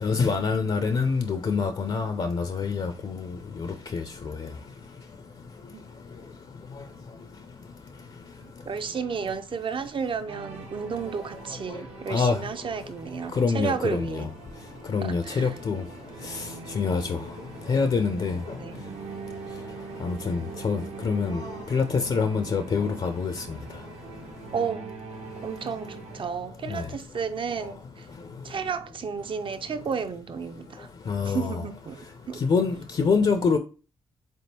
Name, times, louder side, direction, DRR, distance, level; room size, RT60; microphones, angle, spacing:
voice 1, 0.0-3.3 3.9-4.0 12.1-12.4 13.4-14.3 14.9-15.8 16.7-17.2 17.7-18.4 20.0-21.4 21.7-23.3 26.7-26.8 31.1-31.6 32.4-33.6, left 5 dB, 45° left, 0.5 m, -25 dB
voice 2, 8.4-14.3 15.0-15.6 16.2-16.3 18.6-19.0 24.5-24.9 25.4-28.1 28.4-30.9 31.2-32.4, right 6 dB, 45° right, 0.5 m, -32 dB
sound 1, 10.3-26.2, right 4 dB, 65° right, 0.9 m, -43 dB
3.7 x 3.4 x 2.8 m
hypercardioid pair, 45°, 12 cm